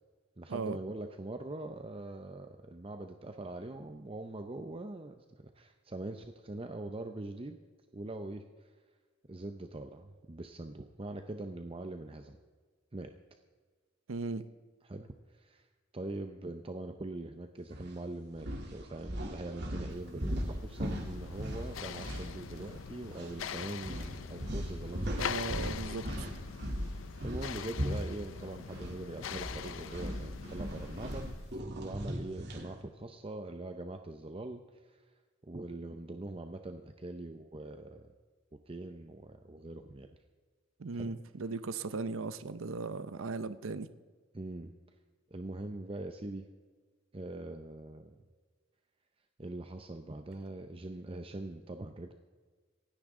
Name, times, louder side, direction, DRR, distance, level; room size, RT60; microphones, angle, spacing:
voice 1, 0.4-5.2 5.5-7.6 7.9-8.7 9.3-12.4 12.9-13.1 14.8-15.7 15.9-25.4 26.9-35.0 35.5-38.1 38.7-40.2 40.9-41.1 44.3-44.7 45.3-46.5 47.1-48.2 49.4-52.1, right 2 dB, 30° right, 0.7 m, -42 dB
voice 2, 14.1-14.4 25.2-26.3 40.8-43.9, right 3 dB, 90° right, 0.7 m, -37 dB
sound 1, 17.7-17.9 18.4-22.8 23.1-23.3 23.8-29.0 29.3-32.7, equal, 60° right, 3.0 m, -38 dB
sound 2, 20.1-31.6, left 7 dB, 70° left, 0.5 m, -43 dB
27.0 x 9.9 x 3.7 m
head